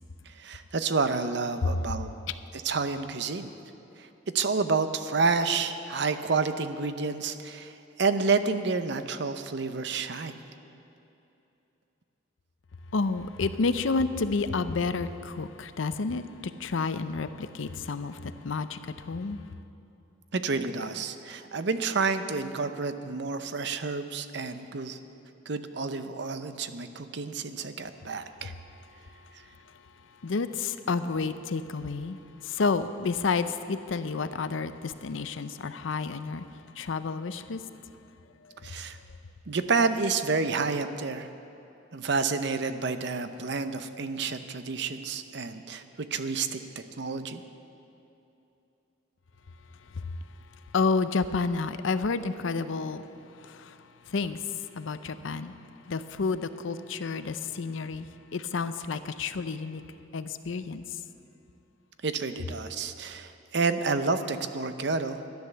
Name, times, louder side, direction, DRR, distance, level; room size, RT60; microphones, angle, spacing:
voice 1, 0.3-2.1 2.5-3.5 4.0-4.1 4.3-10.4 20.3-25.0 25.5-28.5 38.6-39.0 39.5-41.3 41.9-47.4 62.0-65.2, right 4 dB, 60° right, 10 dB, 0.7 m, -29 dB
voice 2, 12.9-19.4 30.2-37.6 38.6-38.7 49.9-50.1 50.7-53.0 53.3-53.8 54.1-55.5 55.9-59.8 60.1-60.8, left 4 dB, 85° left, 12 dB, 0.6 m, -30 dB
13.0 x 10.5 x 6.8 m, 2.9 s
head